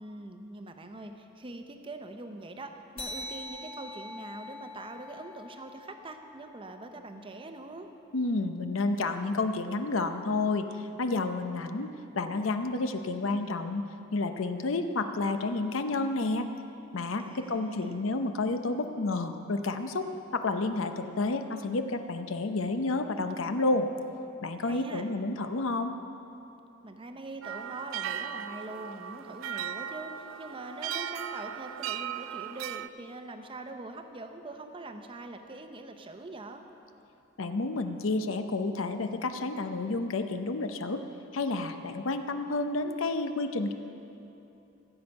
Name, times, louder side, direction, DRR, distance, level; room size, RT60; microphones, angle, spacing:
voice 1, 0.0-7.9 17.2-18.0 24.6-25.0 26.8-36.6, right 2 dB, 25° right, 6 dB, 0.7 m, -43 dB
sound 1, 3.0-7.9, left 1 dB, 30° left, 1.1 m, -44 dB
voice 2, 8.1-13.8 14.1-16.5 16.9-23.9 24.4-25.9 37.4-41.0 41.3-43.7, left 3 dB, 90° left, 8 dB, 0.7 m, -30 dB
sound 2, 27.4-32.9, right 9 dB, 75° right, 0.3 m, -37 dB
15.5 x 7.9 x 5.3 m, 2.8 s
head